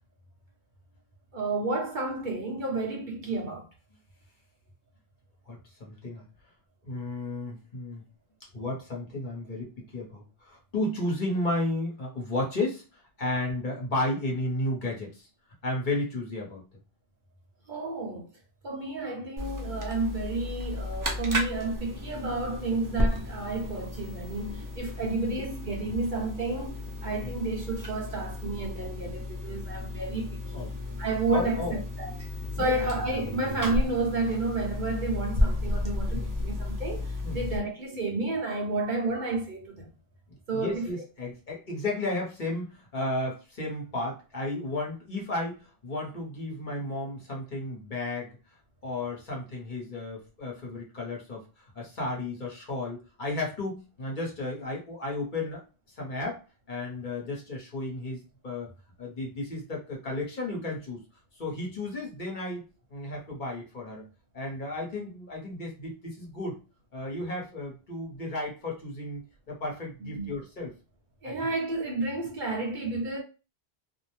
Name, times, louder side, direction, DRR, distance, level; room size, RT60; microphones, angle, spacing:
voice 1, 1.3-3.7 17.7-18.3 18.6-30.7 31.0-32.1 32.6-39.9 40.5-40.9 70.0-70.4 71.2-73.2, right 2 dB, 55° right, 0.7 m, -31 dB
voice 2, 5.5-6.2 6.8-8.0 8.5-12.8 13.2-15.3 15.6-16.7 25.0-25.1 30.5-30.7 31.3-31.7 32.6-32.9 36.1-36.5 37.2-37.5 40.5-48.4 48.8-51.4 51.7-55.6 56.0-56.4 56.7-58.7 59.0-61.0 61.4-62.6 62.9-64.0 64.3-66.6 66.9-69.2 69.5-70.7 71.2-71.4, left 2 dB, 50° left, 1.0 m, -33 dB
TV - Turned on and off, 19.4-37.6, left 1 dB, 25° right, 0.4 m, -33 dB
2.4 x 2.0 x 3.0 m
omnidirectional pair, 1.1 m